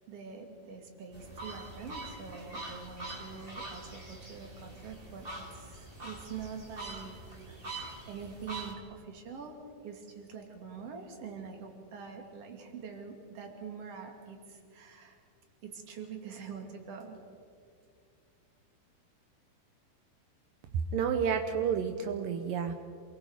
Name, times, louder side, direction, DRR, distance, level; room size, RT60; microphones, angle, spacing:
voice 1, 0.1-7.2 7.5-7.6 8.1-9.6 9.8-15.2 15.6-17.2, right 6 dB, 45° right, 3 dB, 3.2 m, -45 dB
sound 1, 1.1-8.7, right 2 dB, 20° right, 2.0 m, -44 dB
voice 2, 20.9-22.7, right 7 dB, 80° right, 6 dB, 2.6 m, -30 dB
28.0 x 22.5 x 5.0 m, 2.3 s
omnidirectional pair, 3.9 m